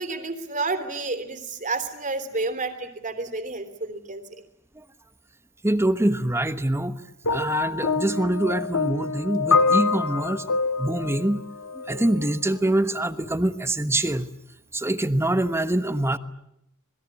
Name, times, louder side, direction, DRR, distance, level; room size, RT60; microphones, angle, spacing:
voice 1, 0.0-4.2, right 3 dB, 35° right, 9 dB, 3.3 m, -30 dB
voice 2, 5.6-7.0 7.3-10.4 10.8-11.4 11.7-14.3 14.7-16.2, right 1 dB, 10° right, 12 dB, 1.2 m, -24 dB
sound 1, 7.2-12.4 13.3-13.4, left 4 dB, 65° left, 1.8 m, -25 dB
27.0 x 21.0 x 9.9 m, 0.78 s
head